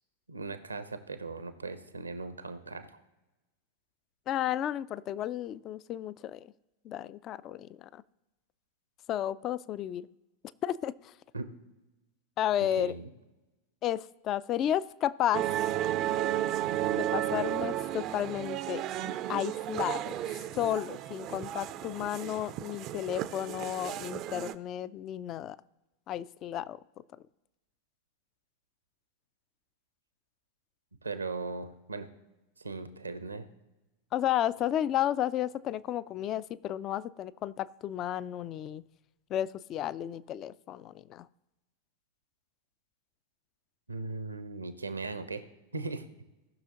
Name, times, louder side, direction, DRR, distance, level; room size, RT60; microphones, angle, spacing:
voice 1, 0.3-3.0 11.3-11.4 12.8-13.1 31.0-32.1 32.6-33.5 43.9-45.4 45.7-46.1, right 3 dB, 80° right, 11 dB, 0.8 m, -38 dB
voice 2, 4.3-6.5 6.8-8.0 9.1-10.1 10.6-11.1 12.4-12.9 13.8-15.5 16.9-18.8 19.3-20.2 20.5-25.6 26.1-26.8 34.1-38.8 39.3-41.3, left 11 dB, 35° left, 18 dB, 0.3 m, -32 dB
sound 1, 15.3-24.5, right 12 dB, 35° right, 0.4 m, -33 dB
18.5 x 6.1 x 2.9 m, 1.1 s
figure-of-eight pair, 90°, 0 cm